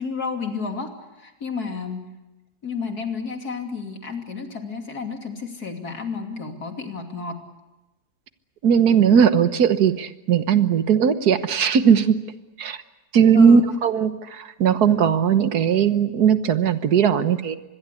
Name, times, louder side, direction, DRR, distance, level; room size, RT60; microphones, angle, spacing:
voice 1, 0.0-2.1 2.6-7.4 13.3-13.6, left 5 dB, 65° left, 4 dB, 3.3 m, -31 dB
voice 2, 8.6-12.2 12.6-12.8 13.1-17.6, right 7 dB, 65° right, 11 dB, 1.7 m, -18 dB
25.5 x 21.5 x 8.4 m, 1.0 s
omnidirectional pair, 1.8 m